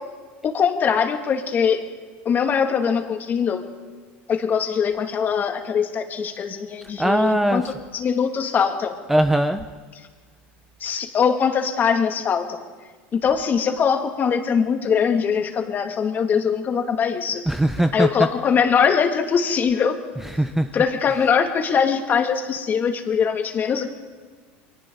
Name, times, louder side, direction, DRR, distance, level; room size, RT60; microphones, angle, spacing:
voice 1, 0.4-1.8 2.2-3.6 4.3-8.9 10.8-12.6 13.1-17.5 17.9-20.0 20.7-23.9, left 6 dB, 35° left, 4 dB, 2.5 m, -22 dB
voice 2, 7.0-7.6 9.1-9.7 17.5-18.1 20.4-20.7, right 1 dB, 5° right, 8 dB, 0.8 m, -20 dB
28.5 x 23.5 x 4.0 m, 1.5 s
supercardioid pair, 120°, 6 cm